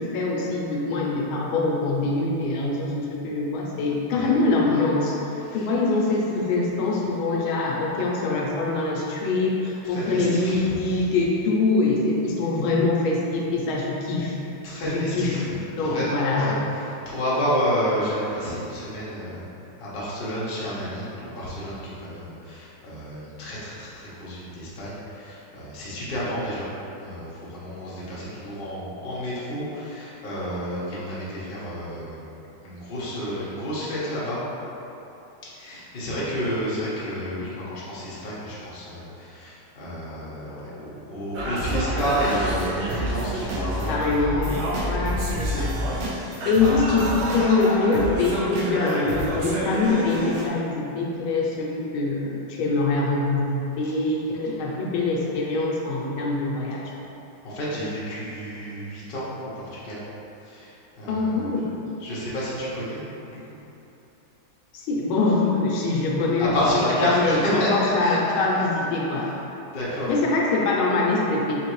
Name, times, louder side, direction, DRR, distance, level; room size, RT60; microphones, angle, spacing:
voice 1, 0.0-14.4 14.8-16.5 43.9-45.2 45.5-45.7 46.5-56.9 61.1-61.9 64.7-66.7 67.0-69.3 70.1-71.5, left 3 dB, 80° left, -3 dB, 1.4 m, -24 dB
voice 2, 9.9-10.7 14.6-15.4 15.8-19.4 19.8-26.7 27.0-32.2 32.6-34.4 35.5-44.0 46.6-46.7 57.4-59.3 59.5-60.0 60.4-61.5 62.0-63.0 63.3-63.4 66.4-68.4 69.1-69.3 69.7-70.1, equal, 45° left, -9 dB, 0.7 m, -30 dB
Singing, 41.3-50.5, right 1 dB, 80° right, 1.5 m, -28 dB
4.3 x 3.2 x 3.0 m, 2.9 s
omnidirectional pair, 2.3 m